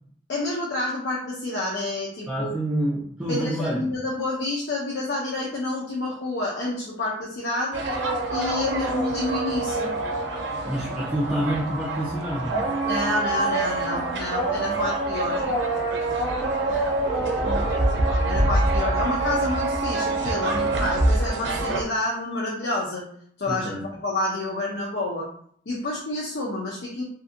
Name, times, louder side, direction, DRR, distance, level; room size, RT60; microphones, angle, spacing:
voice 1, 0.3-2.5 3.3-7.8 8.3-10.0 12.9-15.4 18.2-23.0 23.4-25.3 25.7-27.0, left 2 dB, 75° left, -4 dB, 0.5 m, -29 dB
voice 2, 2.3-3.8 10.6-12.7 14.6-14.8 17.2-17.7 23.5-23.9, right 1 dB, 5° right, -7 dB, 0.4 m, -28 dB
sound 1, 7.7-21.8, right 2 dB, 80° right, 0.5 m, -25 dB
2.6 x 2.5 x 2.5 m, 0.62 s
head